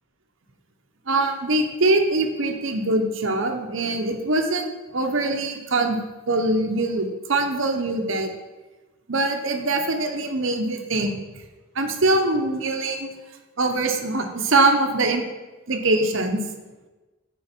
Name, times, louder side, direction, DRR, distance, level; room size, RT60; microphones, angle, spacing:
voice 1, 1.1-6.0 6.3-8.3 9.1-11.2 11.8-13.1 13.6-15.2 15.7-16.4, right 2 dB, 65° right, 4 dB, 0.9 m, -23 dB
8.8 x 4.7 x 4.5 m, 1.2 s
head